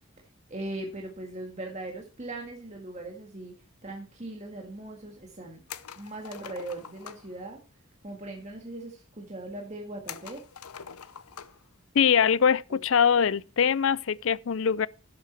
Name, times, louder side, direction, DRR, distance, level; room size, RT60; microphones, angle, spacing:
voice 1, 0.5-3.5 3.8-5.6 5.9-7.6 8.0-10.4 12.7-12.8, right 2 dB, 30° right, 1.8 m, -39 dB
sound 1, 5.7-7.3 10.1-11.7 12.0-12.1 13.7-14.0, left 8 dB, 85° left, 0.8 m, -44 dB
voice 2, 11.9-14.9, left 7 dB, 60° left, 0.4 m, -23 dB
11.5 x 8.3 x 4.3 m
head